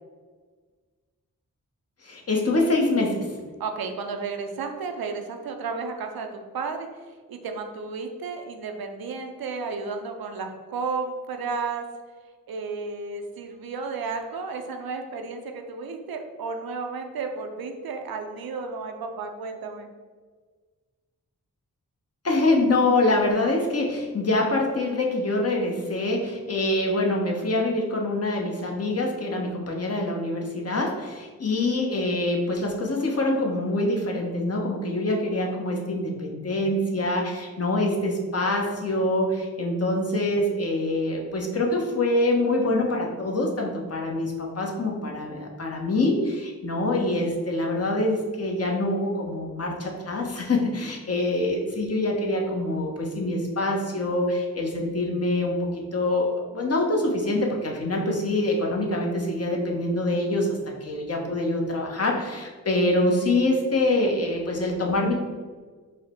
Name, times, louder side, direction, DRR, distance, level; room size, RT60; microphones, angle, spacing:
voice 1, 2.0-3.3 22.2-65.1, left 2 dB, 45° left, 0 dB, 0.9 m, -25 dB
voice 2, 3.6-6.9 7.3-11.8 12.5-19.9, right 4 dB, 90° right, 4 dB, 0.6 m, -33 dB
4.8 x 2.1 x 4.3 m, 1.5 s
cardioid pair, 45°, 35 cm